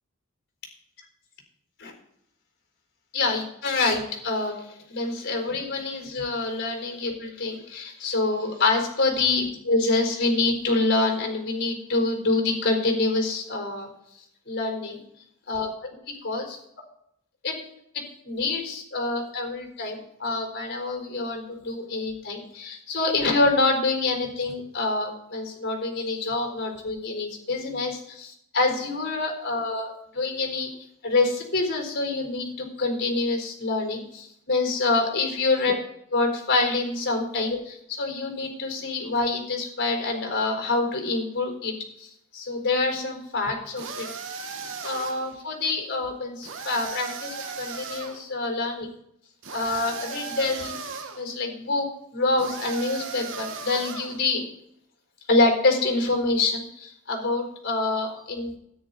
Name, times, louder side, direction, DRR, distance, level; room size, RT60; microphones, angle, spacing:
voice 1, 3.1-13.9 14.5-15.0 15.5-15.9 16.2-16.6 17.4-17.5 17.9-30.7 31.0-35.8 36.1-41.7 42.0-44.1 44.8-48.9 49.5-50.8 51.2-51.9 52.1-54.4 55.3-58.6, left 3 dB, 55° left, 1 dB, 4.1 m, -26 dB
sound 1, 43.8-45.3 46.4-48.2 49.4-51.2 52.4-54.2, right 5 dB, 65° right, 1.3 m, -36 dB
13.0 x 9.8 x 4.1 m, 0.74 s
head